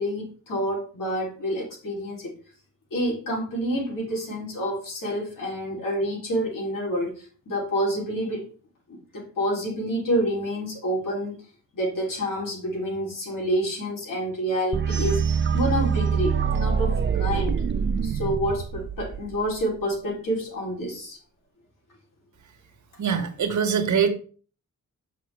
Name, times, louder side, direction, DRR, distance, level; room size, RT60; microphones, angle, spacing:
voice 1, 0.0-2.3 2.9-8.5 8.9-11.4 11.7-15.2 15.5-17.6 18.0-21.2, equal, 80° left, -3 dB, 3.5 m, -28 dB
sound 1, 14.7-19.6, right 6 dB, 40° right, 0.5 m, -25 dB
voice 2, 23.0-24.1, right 7 dB, 65° right, 6 dB, 1.3 m, -23 dB
7.2 x 5.8 x 3.4 m, 0.39 s
wide cardioid pair, 140°, 32 cm